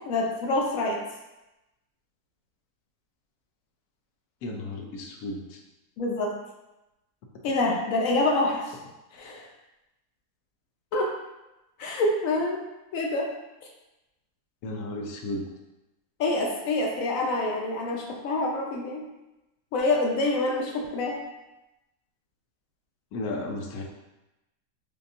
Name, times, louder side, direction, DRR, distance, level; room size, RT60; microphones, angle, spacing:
voice 1, 0.1-1.0 6.0-6.3 7.4-8.6 9.2-9.4 10.9-11.1 11.8-12.6 12.9-13.3 16.2-19.0 19.7-21.2, left 2 dB, 70° left, 0 dB, 0.9 m, -26 dB
voice 2, 4.4-5.6 14.6-15.5 23.1-23.8, left 2 dB, 85° left, 1 dB, 1.1 m, -34 dB
5.1 x 2.3 x 2.5 m, 0.97 s
omnidirectional pair, 1.6 m